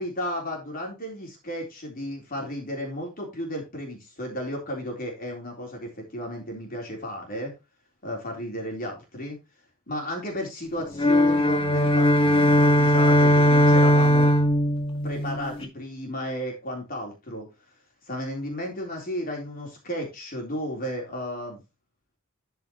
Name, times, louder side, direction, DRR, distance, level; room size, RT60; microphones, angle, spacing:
voice 1, 0.0-7.5 8.0-9.4 9.9-14.3 15.0-17.5 18.1-21.6, equal, 40° left, 0 dB, 3.8 m, -33 dB
sound 1, 10.9-15.7, equal, 25° left, 1.8 m, -19 dB
13.0 x 5.7 x 3.1 m, 0.25 s
head